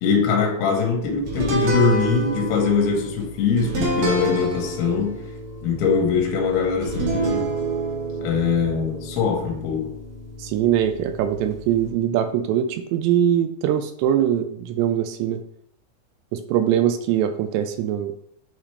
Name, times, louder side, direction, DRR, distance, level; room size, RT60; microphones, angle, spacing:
voice 1, 0.0-5.2 5.6-7.5 8.2-9.9, left 5 dB, 70° left, 1 dB, 2.9 m, -22 dB
sound 1, 1.3-11.9, right 2 dB, 65° right, 1.7 m, -29 dB
voice 2, 10.4-15.4 16.3-18.1, right 10 dB, 85° right, 8 dB, 2.6 m, -22 dB
8.6 x 4.1 x 3.2 m, 0.68 s
omnidirectional pair, 5.4 m